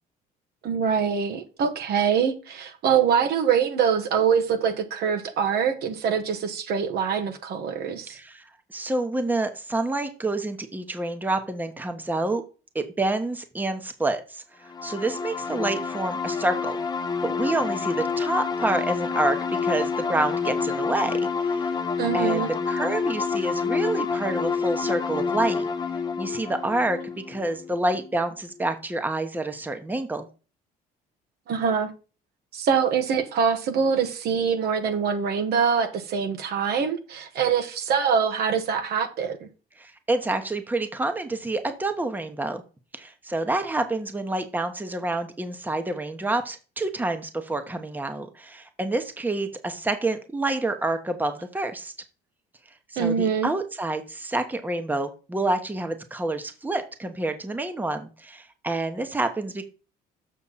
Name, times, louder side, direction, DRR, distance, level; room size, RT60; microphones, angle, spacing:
voice 1, 0.6-8.2 22.0-22.5 31.5-31.9 32.5-39.4 53.0-53.5, right 7 dB, 70° right, 1.5 m, -24 dB
voice 2, 8.1-12.4 12.7-16.8 17.2-21.7 22.1-25.7 26.2-27.0 27.3-30.3 39.8-42.6 42.9-51.9 52.9-59.6, right 2 dB, 10° right, 1.1 m, -28 dB
sound 1, 14.7-28.2, left 5 dB, 25° left, 0.9 m, -28 dB
7.2 x 6.1 x 4.1 m
cardioid pair, 110°, 17 cm